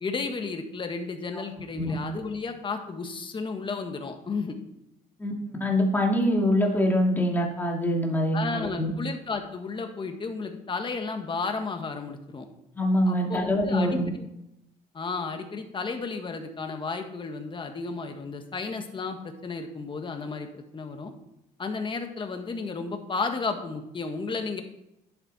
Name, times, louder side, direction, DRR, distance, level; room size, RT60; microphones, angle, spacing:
voice 1, 0.0-4.6 8.3-12.5 13.0-13.9 14.2-14.3 14.9-21.1 21.6-24.6, left 4 dB, 30° left, 5 dB, 1.6 m, -33 dB
voice 2, 5.6-8.9 12.8-14.1, left 1 dB, 10° left, 0 dB, 2.4 m, -24 dB
11.0 x 7.7 x 4.3 m, 0.85 s
cardioid pair, 110°, 17 cm